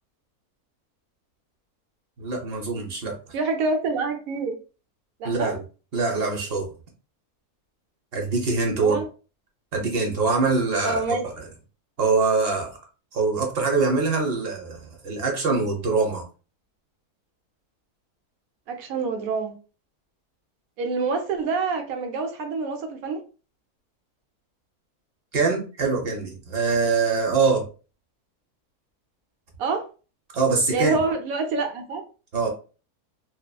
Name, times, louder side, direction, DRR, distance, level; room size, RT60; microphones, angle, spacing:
voice 1, 2.2-3.1 5.2-5.6 5.9-6.7 8.1-9.0 9.7-11.4 12.0-12.8 13.1-16.2 25.3-27.7 30.3-31.0 32.3-32.5, right 4 dB, 50° right, 0.7 m, -24 dB
voice 2, 3.3-4.6 5.2-5.5 8.8-9.0 10.8-11.2 18.7-19.5 20.8-23.2 29.6-29.8 30.7-32.0, right 4 dB, 75° right, 1.0 m, -26 dB
2.8 x 2.4 x 2.2 m
omnidirectional pair, 1.6 m